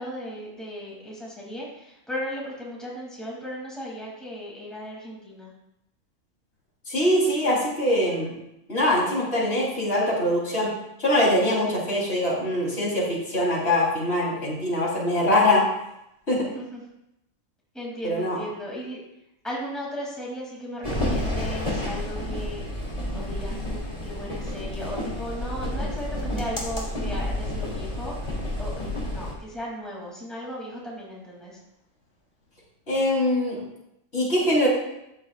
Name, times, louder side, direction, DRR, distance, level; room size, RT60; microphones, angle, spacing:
voice 1, 0.0-5.5 16.4-16.8 17.7-19.0 19.4-22.8 23.1-28.1 28.6-31.6, equal, ahead, -5 dB, 2.9 m, -36 dB
voice 2, 6.9-8.3 8.7-10.7 11.0-15.6 16.3-16.5 18.0-18.4 32.9-33.6 34.1-34.7, left 1 dB, 50° left, -6 dB, 4.3 m, -23 dB
sound 1, 20.8-29.3, left 1 dB, 25° left, 3.3 m, -30 dB
14.5 x 10.0 x 2.5 m, 0.84 s
omnidirectional pair, 1.4 m